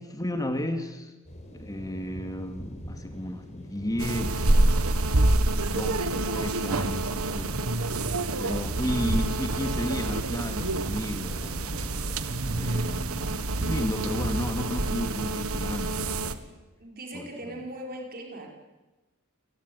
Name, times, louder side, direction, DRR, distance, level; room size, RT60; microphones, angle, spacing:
voice 1, 0.1-1.1 1.5-4.7 5.6-7.5 8.4-11.4 12.5-16.2 17.1-17.6, left 1 dB, 15° left, 7 dB, 2.2 m, -33 dB
sound 1, 1.2-16.3, equal, 35° left, 5.5 m, -45 dB
sound 2, 4.0-16.3, right 2 dB, 85° right, 1.5 m, -27 dB
voice 2, 16.8-18.5, right 1 dB, 45° right, 1 dB, 5.3 m, -39 dB
28.5 x 18.0 x 9.7 m, 1.1 s
head